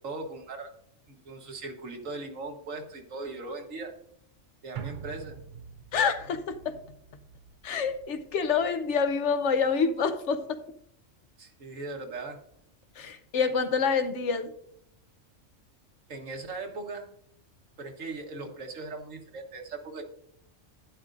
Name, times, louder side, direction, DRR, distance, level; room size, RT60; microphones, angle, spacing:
voice 1, 0.0-0.7 1.1-3.9 4.6-5.4 11.4-12.4 16.1-17.1 17.8-20.0, right 3 dB, 90° right, 3 dB, 1.7 m, -39 dB
sound 1, 4.7-9.2 9.5-9.6, right 7 dB, 50° right, 0.6 m, -45 dB
voice 2, 5.9-6.8 7.6-10.6 13.0-14.5, left 5 dB, 70° left, 10 dB, 1.0 m, -27 dB
11.5 x 10.0 x 2.6 m, 0.71 s
omnidirectional pair, 1.3 m